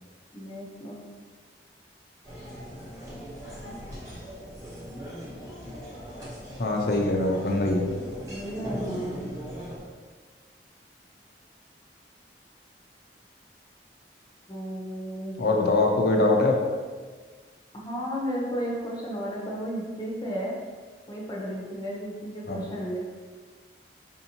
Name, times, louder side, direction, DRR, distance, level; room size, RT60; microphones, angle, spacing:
voice 1, 0.3-1.0 8.3-9.3 14.5-15.3 17.7-20.6 21.1-23.0, equal, 25° left, -4 dB, 0.7 m, -33 dB
sound 1, 2.2-9.8, equal, 20° right, 1.0 m, -39 dB
voice 2, 6.6-7.9 15.4-16.6 22.5-22.6, left 2 dB, 60° left, 1 dB, 0.5 m, -23 dB
4.3 x 2.7 x 2.8 m, 1.5 s
head